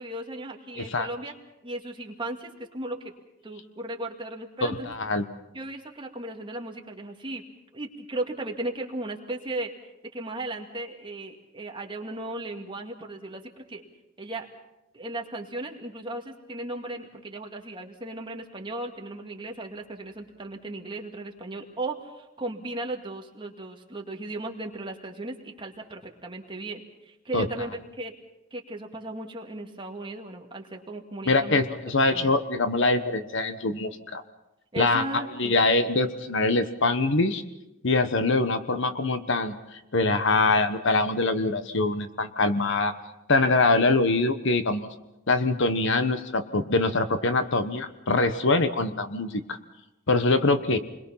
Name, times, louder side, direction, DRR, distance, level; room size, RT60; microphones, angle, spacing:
voice 1, 0.0-1.3 1.6-3.1 3.4-4.9 5.5-7.4 7.7-13.8 14.2-14.5 14.9-28.1 28.5-31.6 32.1-32.3 34.7-35.6, right 2 dB, 25° right, 1 dB, 2.1 m, -36 dB
voice 2, 4.6-5.2 27.3-27.5 31.3-34.2 34.8-35.0 35.4-37.4 37.8-42.9 43.3-44.9 45.3-49.6 50.1-50.8, left 3 dB, 60° left, 10 dB, 1.2 m, -24 dB
29.0 x 22.0 x 5.8 m, 0.94 s
head